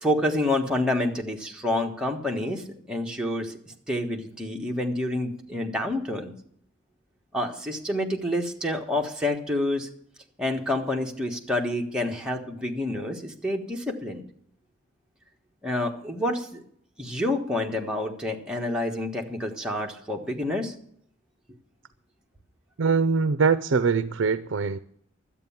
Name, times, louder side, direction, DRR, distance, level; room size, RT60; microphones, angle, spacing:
voice 1, 0.0-6.3 7.3-9.9 10.4-14.2 15.6-16.6 17.0-20.7, left 1 dB, 5° right, 1.4 m, -28 dB
voice 2, 22.8-24.8, right 5 dB, 70° right, 0.5 m, -23 dB
12.5 x 8.4 x 7.2 m
head